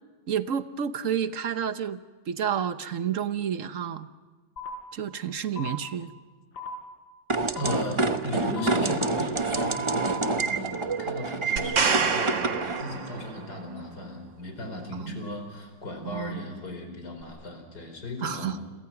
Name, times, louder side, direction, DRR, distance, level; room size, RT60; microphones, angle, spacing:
voice 1, 0.3-2.0 2.3-4.1 4.9-6.1 15.0-15.2 16.0-16.4 18.2-18.6, right 8 dB, 55° right, 11 dB, 1.1 m, -30 dB
sound 1, 4.6-4.7 5.6-5.7 6.6-6.7 7.6-7.7 8.5-8.7 9.5-10.1, left 1 dB, 85° left, 4.2 m, -36 dB
sound 2, 7.3-12.8, right 3 dB, 25° right, 0.6 m, -28 dB
voice 2, 7.5-18.6, left 1 dB, 60° left, 5 dB, 5.1 m, -36 dB
sound 3, 11.6-13.5 17.2-17.3, right 5 dB, 80° right, 2.6 m, -27 dB
29.5 x 23.0 x 6.0 m, 1.4 s
omnidirectional pair, 2.0 m